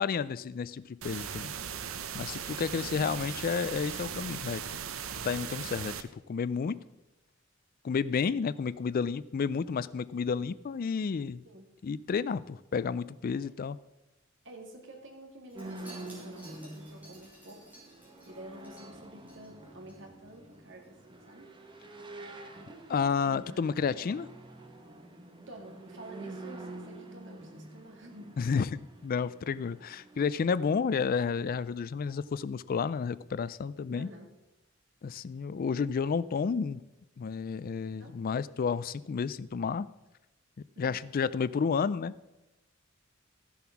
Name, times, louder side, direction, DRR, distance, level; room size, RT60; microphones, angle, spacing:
voice 1, 0.0-1.5 2.1-4.6 5.2-6.8 7.8-11.4 11.8-13.8 22.9-24.3 28.4-34.1 35.0-36.8 37.2-39.9 40.8-42.1, left 5 dB, 45° left, 17 dB, 0.3 m, -31 dB
sound 1, 1.0-6.0, right 7 dB, 90° right, 0.8 m, -38 dB
voice 2, 2.8-3.2 6.6-6.8 11.4-11.7 13.4-13.5 14.4-17.8 18.3-21.5 23.2-24.2 25.5-28.6 33.9-34.3 37.9-38.2 40.8-41.0, right 1 dB, 65° right, 2 dB, 2.3 m, -50 dB
Wind chime, 15.5-20.0 20.3-20.6 20.8-20.9, right 1 dB, 10° right, 4.6 m, -55 dB
sound 2, 15.6-30.3, right 2 dB, 25° right, 1.2 m, -47 dB
14.0 x 7.1 x 5.9 m, 0.99 s
head